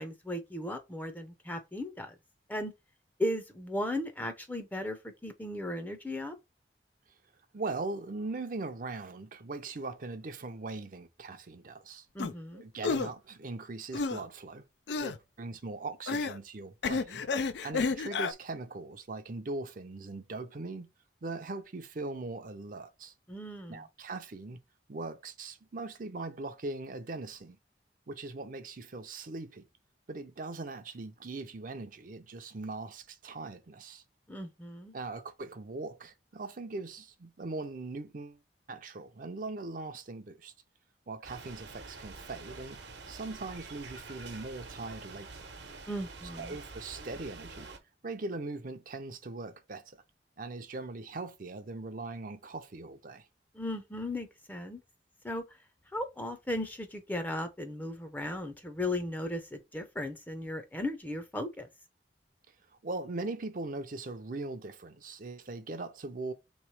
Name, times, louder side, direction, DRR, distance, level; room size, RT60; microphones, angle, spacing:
voice 1, 0.0-2.1 2.5-2.7 3.2-5.0 5.2-6.4 12.1-12.6 23.3-23.8 34.3-34.9 45.9-46.6 53.6-54.8 55.2-55.4 55.9-61.7, left 1 dB, 10° left, 0.6 m, -36 dB
voice 2, 7.5-12.1 12.5-14.6 15.0-17.2 17.6-20.9 21.2-23.1 23.7-24.6 24.9-27.6 28.1-29.6 30.1-34.0 34.9-38.4 38.7-40.5 41.1-42.8 43.1-45.5 46.4-47.7 48.0-50.0 50.4-53.3 62.8-66.3, right 3 dB, 50° right, 0.6 m, -40 dB
sound 1, 12.2-12.3 12.8-13.1 13.9-14.2 14.9-15.2 16.1-16.4 16.8-18.3, left 4 dB, 75° left, 0.4 m, -31 dB
sound 2, 41.2-47.8, right 3 dB, 80° right, 1.0 m, -47 dB
3.5 x 3.1 x 4.7 m
head